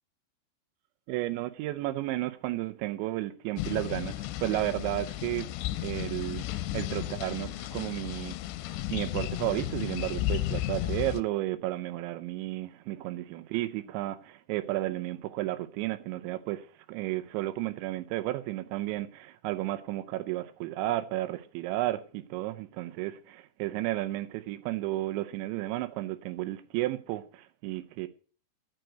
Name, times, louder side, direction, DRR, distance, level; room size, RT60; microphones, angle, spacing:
voice 1, 1.1-5.5 5.8-8.4 8.7-28.1, right 16 dB, 80° right, 3.0 m, -33 dB
sound 1, 3.6-11.2, left 14 dB, 80° left, 2.7 m, -34 dB
9.3 x 7.6 x 7.8 m
omnidirectional pair, 5.3 m